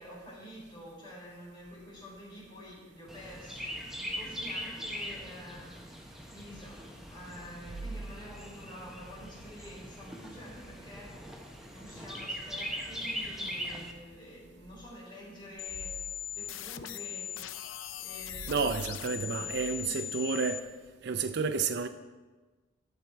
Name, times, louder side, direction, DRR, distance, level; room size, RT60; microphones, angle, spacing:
voice 1, 0.0-11.2 11.7-16.0 16.3-17.3 18.0-18.8 19.1-20.0, equal, 25° left, 3.8 m, -48 dB
Chirp tweet, 3.1-13.9, equal, ahead, 0.9 m, -41 dB
sound 1, 15.6-20.6, left 10 dB, 80° left, 0.4 m, -39 dB
voice 2, 18.5-20.7 21.0-21.9, right 5 dB, 55° right, 0.4 m, -30 dB
11.5 x 7.2 x 4.5 m
head